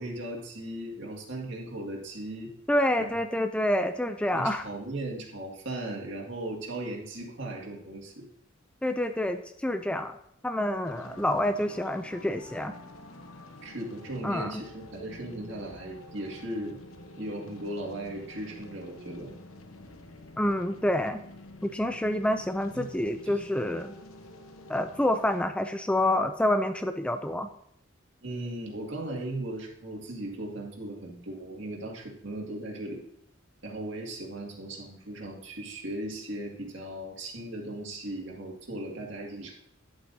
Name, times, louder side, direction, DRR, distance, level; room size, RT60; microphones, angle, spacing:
voice 1, 0.0-2.5 3.0-3.4 4.3-8.3 13.6-16.8 17.2-19.3 22.7-22.9 23.3-23.4 28.2-33.0 33.6-39.5, right 1 dB, 60° right, -1 dB, 2.1 m, -37 dB
voice 2, 2.7-4.6 8.8-10.2 10.4-12.7 14.2-14.6 20.4-21.2 21.6-23.9 24.7-27.5, left 1 dB, 5° left, 8 dB, 0.3 m, -27 dB
sound 1, 10.8-25.4, left 2 dB, 90° left, 1.0 m, -48 dB
11.0 x 7.9 x 2.7 m, 0.75 s
head